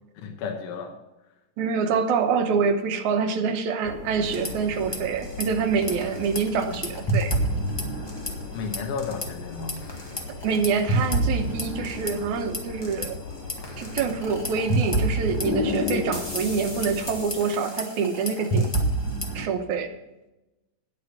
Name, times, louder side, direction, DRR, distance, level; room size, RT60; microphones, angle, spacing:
voice 1, 0.2-0.9 8.5-9.8, left 5 dB, 80° left, 3 dB, 2.7 m, -33 dB
voice 2, 1.6-7.3 10.4-13.2 13.8-18.7 19.3-19.9, right 5 dB, 75° right, 6 dB, 2.3 m, -26 dB
sound 1, 3.8-17.3, left 4 dB, 60° left, 1.1 m, -36 dB
sound 2, 4.2-5.0 5.2-5.4 5.8-8.5 8.7-9.3 9.7-13.1 13.5-19.5, right 1 dB, 15° left, 0.8 m, -28 dB
10.5 x 9.5 x 5.6 m, 0.97 s
omnidirectional pair, 3.6 m